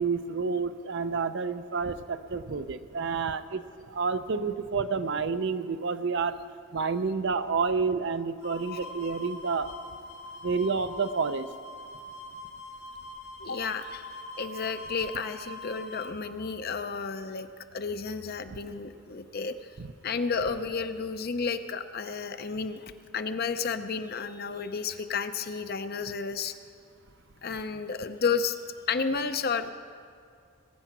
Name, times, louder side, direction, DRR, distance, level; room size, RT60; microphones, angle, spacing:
voice 1, 0.0-3.6 3.9-6.3 6.7-9.7 10.4-11.5 19.8-19.9, right 5 dB, 50° right, 11 dB, 0.5 m, -29 dB
sound 1, 8.4-16.1, left 1 dB, 75° left, 2.4 m, -43 dB
voice 2, 13.4-14.1 14.4-19.7 20.0-26.5 27.4-28.6 28.9-29.7, left 5 dB, 45° left, 9 dB, 0.6 m, -32 dB
21.0 x 9.1 x 5.9 m, 2.3 s
head